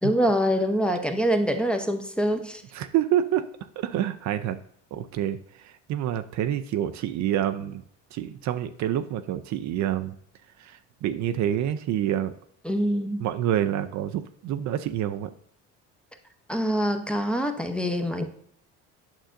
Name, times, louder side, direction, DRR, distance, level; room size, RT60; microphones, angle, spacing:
voice 1, 0.0-2.6 12.6-13.3 16.5-18.2, equal, 5° left, 5 dB, 0.7 m, -25 dB
voice 2, 2.7-3.4 3.8-4.6 4.9-7.8 8.1-10.2 10.6-12.3 13.2-15.3, right 11 dB, 55° right, 9 dB, 0.5 m, -27 dB
8.8 x 6.3 x 2.5 m, 0.65 s
supercardioid pair, 90°, 33 cm